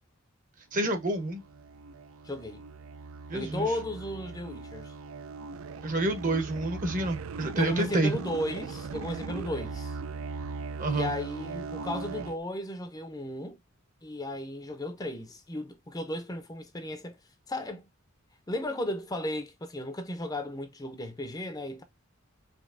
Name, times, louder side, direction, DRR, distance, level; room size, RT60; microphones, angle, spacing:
voice 1, 0.7-1.4 3.3-3.7 5.8-8.1 10.8-11.1, right 2 dB, 35° right, 0.9 m, -28 dB
sound 1, 0.9-12.4, right 4 dB, 75° right, 0.4 m, -39 dB
voice 2, 2.2-2.6 3.3-4.9 7.5-10.0 10.9-13.6 14.0-17.2 17.5-17.9 18.5-21.8, left 1 dB, 15° left, 0.6 m, -35 dB
5.2 x 2.8 x 2.5 m
head